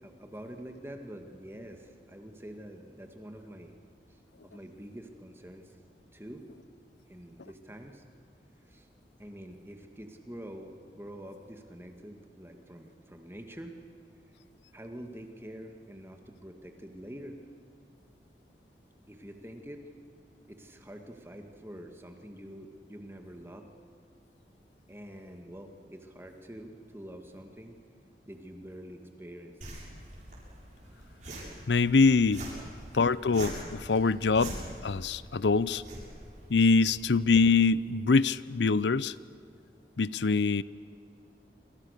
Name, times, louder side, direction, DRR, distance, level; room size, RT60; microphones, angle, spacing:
voice 1, 0.0-3.7 4.1-5.7 6.1-6.5 7.1-8.0 8.7-8.9 9.2-13.8 14.7-17.4 19.1-19.9 20.5-23.7 24.9-27.8 28.2-29.6, equal, 15° right, 4 dB, 2.1 m, -46 dB
sound 1, 29.6-37.6, right 1 dB, 45° right, 7.7 m, -44 dB
voice 2, 31.7-32.4 32.9-35.8 36.5-39.1 40.0-40.6, left 4 dB, 85° left, 18 dB, 0.6 m, -24 dB
27.0 x 27.0 x 6.7 m, 2.4 s
head